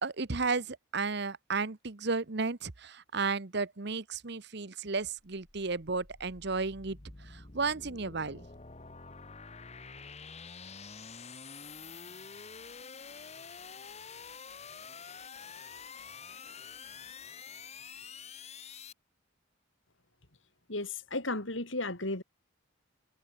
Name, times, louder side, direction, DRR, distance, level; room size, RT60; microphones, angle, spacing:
voice 1, 0.0-7.0 7.3-8.4, right 4 dB, 55° right, 1.1 m, -33 dB
sound 1, 4.9-18.9, left 5 dB, 30° left, 1.4 m, -48 dB
voice 2, 20.7-22.2, left 2 dB, 65° left, 4.8 m, -34 dB
head